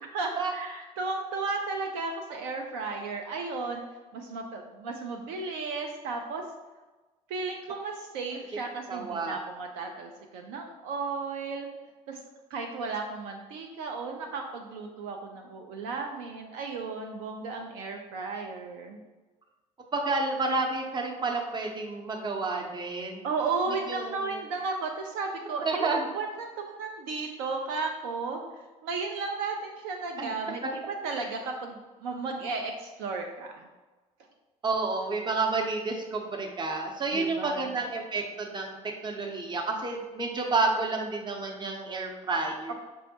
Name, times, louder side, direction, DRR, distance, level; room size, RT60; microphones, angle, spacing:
voice 1, 0.0-3.8 4.1-6.4 7.3-11.7 12.1-12.2 12.5-19.0 23.2-33.7 37.1-37.7 42.7-42.8, right 4 dB, 65° right, 3 dB, 0.4 m, -34 dB
voice 2, 8.9-9.4 19.9-23.2 23.7-24.4 25.6-26.1 30.2-30.3 30.6-30.7 34.6-38.8 39.0-42.7, right 3 dB, 25° right, 1 dB, 0.7 m, -30 dB
5.4 x 2.0 x 2.7 m, 1.2 s
hypercardioid pair, 60°, 18 cm